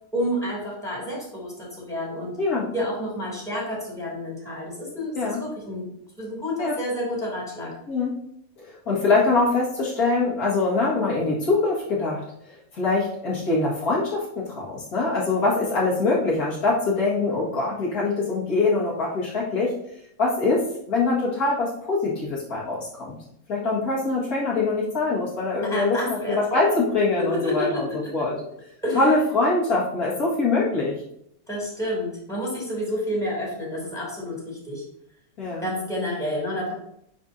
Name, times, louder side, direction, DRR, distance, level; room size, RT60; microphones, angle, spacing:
voice 1, 0.1-2.3 2.7-5.8 6.2-7.7 25.6-26.8 27.2-28.1 28.8-29.2 31.5-34.8 35.6-36.7, equal, ahead, -4 dB, 2.8 m, -29 dB
voice 2, 7.9-8.2 8.6-19.7 20.2-23.2 23.5-26.0 26.3-27.9 28.1-28.3 28.9-31.0 35.4-35.7, left 3 dB, 80° left, -6 dB, 2.3 m, -23 dB
9.6 x 4.7 x 2.7 m, 0.73 s
omnidirectional pair, 1.5 m